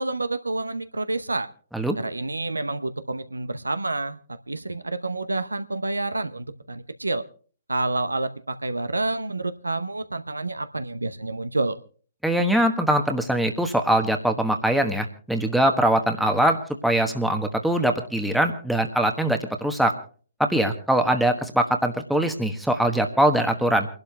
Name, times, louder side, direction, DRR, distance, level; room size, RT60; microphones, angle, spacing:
voice 1, 0.0-1.5 2.0-4.2 4.5-7.3 7.7-11.8, right 2 dB, 80° right, 11 dB, 0.8 m, -28 dB
voice 2, 12.2-19.9 20.4-23.9, right 1 dB, ahead, 4 dB, 1.2 m, -22 dB
29.5 x 12.0 x 2.3 m, 0.41 s
figure-of-eight pair, 130°, 0 cm